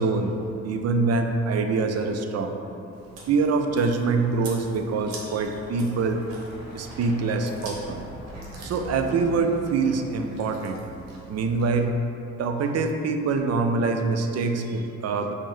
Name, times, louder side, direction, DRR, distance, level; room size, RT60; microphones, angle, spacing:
voice 1, 0.0-2.6 3.3-6.2 6.7-8.1 8.6-10.9 11.3-11.9 12.4-15.3, right 4 dB, 50° right, 5 dB, 0.4 m, -25 dB
Truck, 2.8-12.2, right 1 dB, 30° left, 1.2 m, -44 dB
Chewing mastication, 2.9-11.8, right 2 dB, 80° right, 0.8 m, -46 dB
5.2 x 2.1 x 3.1 m, 2.8 s
supercardioid pair, 60°, 33 cm